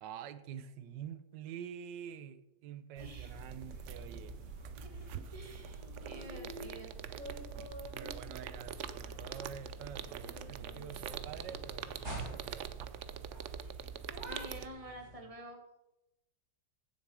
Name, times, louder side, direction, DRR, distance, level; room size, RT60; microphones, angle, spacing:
voice 1, 0.0-4.4 7.9-12.7, right 9 dB, 90° right, 13 dB, 1.3 m, -47 dB
voice 2, 2.9-3.4 4.8-7.2 14.2-15.6, right 1 dB, 20° right, 4 dB, 1.6 m, -50 dB
sound 1, 3.0-14.7, right 8 dB, 65° right, 0.7 m, -44 dB
sound 2, 3.3-15.2, left 1 dB, 40° right, 4.3 m, -49 dB
16.0 x 7.1 x 4.7 m, 0.93 s
omnidirectional pair, 1.9 m